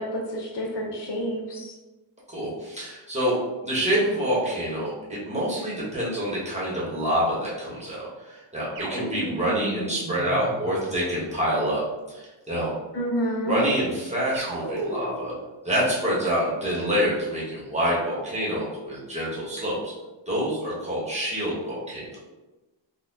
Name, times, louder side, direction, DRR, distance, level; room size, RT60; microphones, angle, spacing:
voice 1, 0.0-1.7 12.9-13.6, equal, 60° left, -1 dB, 0.6 m, -29 dB
voice 2, 2.3-3.4 3.6-12.7 13.4-15.3 15.6-19.9 20.3-22.1, equal, 15° right, -7 dB, 1.0 m, -27 dB
sound 1, 8.8-11.2 14.3-15.4, right 2 dB, 85° right, 0.8 m, -34 dB
4.0 x 2.2 x 2.6 m, 1.1 s
wide cardioid pair, 155°, 47 cm